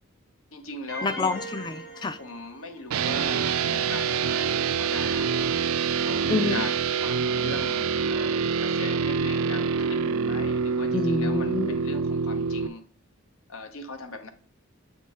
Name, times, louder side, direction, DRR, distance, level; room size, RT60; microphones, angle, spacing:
voice 1, 0.5-1.1 2.2-5.4 6.0-12.8 13.5-14.3, left 3 dB, 80° left, 0.9 m, -40 dB
sound 1, 0.9-3.0, equal, 50° left, 1.1 m, -39 dB
voice 2, 1.0-2.2 6.3-6.6 10.9-11.7, left 3 dB, 20° left, 0.3 m, -27 dB
sound 2, 2.9-12.7, right 5 dB, 80° right, 0.4 m, -26 dB
7.5 x 3.5 x 4.1 m
head